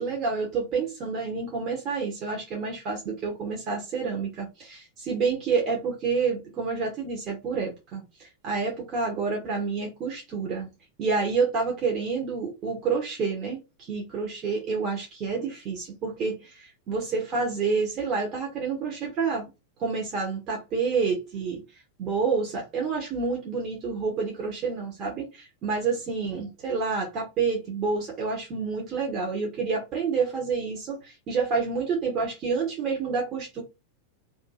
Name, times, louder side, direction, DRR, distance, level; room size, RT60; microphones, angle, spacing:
voice 1, 0.0-10.7 11.0-19.5 19.8-21.6 22.0-33.6, right 5 dB, 35° right, 1.0 m, -28 dB
2.6 x 2.6 x 3.9 m
figure-of-eight pair, 90°, 0 cm